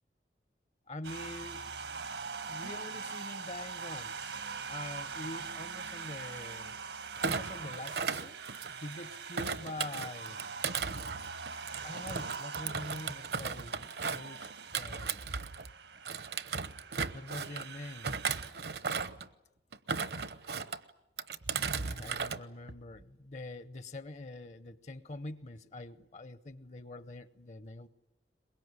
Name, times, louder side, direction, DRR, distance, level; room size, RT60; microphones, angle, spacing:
voice 1, 0.9-1.6 2.5-4.3 4.7-6.8 7.2-8.4 8.8-10.4 11.8-15.2 17.1-18.2 21.8-27.9, left 2 dB, 40° left, 14 dB, 0.9 m, -45 dB
sound 1, 1.0-18.5, right 5 dB, 80° right, 1.6 m, -43 dB
Thump thud, 7.2-8.9 9.4-15.7 16.0-17.7 18.0-19.3 19.7-20.8 21.2-22.4 22.7-23.0, right 5 dB, 65° right, 1.0 m, -36 dB
23.0 x 21.5 x 9.8 m, 0.95 s
head